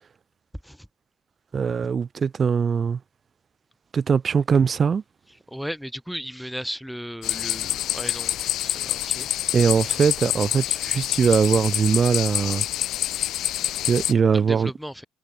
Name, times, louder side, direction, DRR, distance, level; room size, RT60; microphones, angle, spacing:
voice 1, 1.5-3.0 3.9-5.0 9.5-12.6 13.9-14.7, right 6 dB, 30° right, 0.9 m, -21 dB
voice 2, 5.5-8.4 8.6-9.3 14.3-15.0, equal, ahead, 3.2 m, -35 dB
sound 1, 7.2-14.1, left 13 dB, 65° left, 1.2 m, -27 dB
cardioid pair, 160°, 0 cm